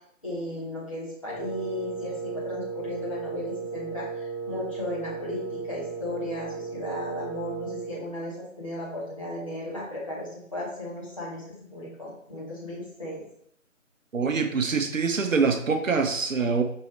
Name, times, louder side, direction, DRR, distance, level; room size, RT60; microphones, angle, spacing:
voice 1, 0.2-13.2, left 1 dB, 25° left, -7 dB, 1.2 m, -35 dB
Wind instrument woodwind instrument, 1.3-8.0, right 5 dB, 65° left, 0.8 m, -35 dB
voice 2, 14.1-16.6, right 5 dB, 75° right, 7 dB, 0.7 m, -24 dB
5.3 x 2.7 x 3.2 m, 0.67 s
figure-of-eight pair, 160°, 40 cm